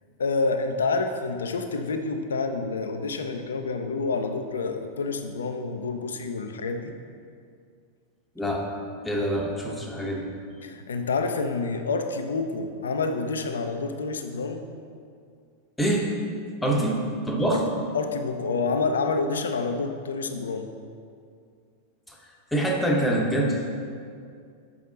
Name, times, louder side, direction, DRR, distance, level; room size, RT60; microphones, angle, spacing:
voice 1, 0.2-6.9 10.6-14.6 16.6-17.0 17.5-17.7 17.9-20.7, left 4 dB, 70° left, 6 dB, 0.5 m, -28 dB
voice 2, 8.4-8.7 9.0-10.3 15.8-16.1 16.6-17.0 17.3-17.6 22.1-22.2 22.5-23.7, right 1 dB, 5° left, -1 dB, 1.0 m, -25 dB
7.0 x 5.1 x 3.9 m, 2.3 s
figure-of-eight pair, 90°, 0 cm